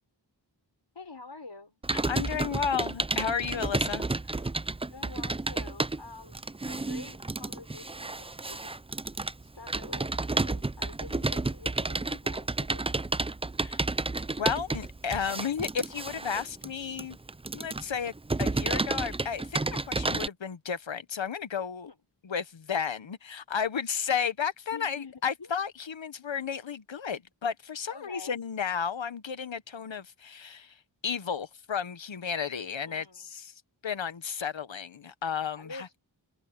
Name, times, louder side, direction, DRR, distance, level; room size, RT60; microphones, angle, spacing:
voice 1, 0.9-1.8 4.9-8.7 9.4-13.0 21.9-22.0 24.7-25.5 27.9-28.4 32.8-33.3 35.6-36.0, left 3 dB, 70° left, 6.1 m, -47 dB
Computer keyboard, 1.8-20.3, right 2 dB, 15° right, 0.5 m, -31 dB
voice 2, 2.0-4.1 13.6-13.8 14.4-17.2 17.5-18.1 18.4-19.6 19.9-21.9 22.2-30.7 31.0-33.0 33.3-33.5 33.8-35.9, left 7 dB, 90° left, 1.1 m, -33 dB
open air
wide cardioid pair, 40°, 44 cm